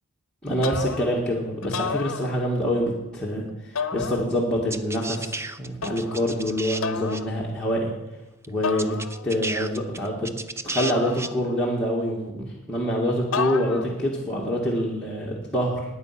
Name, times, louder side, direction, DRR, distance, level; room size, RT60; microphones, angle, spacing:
voice 1, 0.4-7.9 8.5-9.0 9.2-10.3 10.6-15.9, equal, 5° left, -6 dB, 2.1 m, -26 dB
sound 1, 0.6-1.3 1.6-2.8 3.8-4.7 5.8-6.3 6.8-7.3 8.6-9.5 10.8-11.8 13.3-14.1, left 5 dB, 65° left, 0.9 m, -32 dB
sound 2, 4.7-6.8 7.1-7.2 8.4-8.5 8.8-11.3, right 3 dB, 10° right, 0.5 m, -33 dB
16.5 x 9.8 x 6.0 m, 0.96 s
head